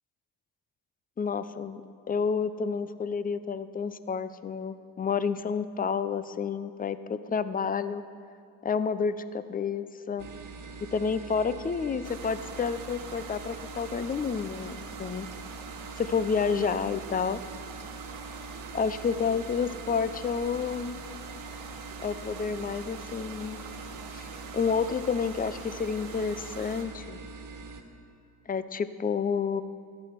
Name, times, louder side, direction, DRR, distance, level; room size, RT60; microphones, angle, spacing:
voice 1, 1.2-8.0 8.6-10.3 10.9-15.3 16.0-17.4 18.7-21.0 22.0-23.6 24.1-24.3 24.5-27.2 28.5-29.6, left 6 dB, 20° left, 14 dB, 0.5 m, -30 dB
sound 1, 10.2-27.8, right 4 dB, 40° right, 1.7 m, -43 dB
sound 2, 12.0-26.8, right 5 dB, 75° right, 2.2 m, -45 dB
13.5 x 9.7 x 5.9 m, 2.4 s
supercardioid pair, 70°, 48 cm